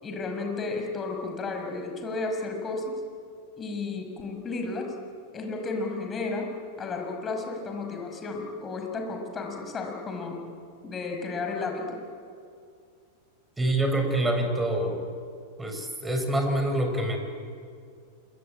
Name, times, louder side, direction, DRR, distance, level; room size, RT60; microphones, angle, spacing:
voice 1, 0.0-3.0 3.6-4.9 5.3-10.4 10.8-12.0, left 3 dB, 20° left, 3 dB, 5.9 m, -33 dB
voice 2, 13.6-15.0 15.6-17.2, right 1 dB, 10° right, 5 dB, 5.3 m, -26 dB
27.5 x 23.5 x 8.7 m, 2.3 s
figure-of-eight pair, 90°, 0 cm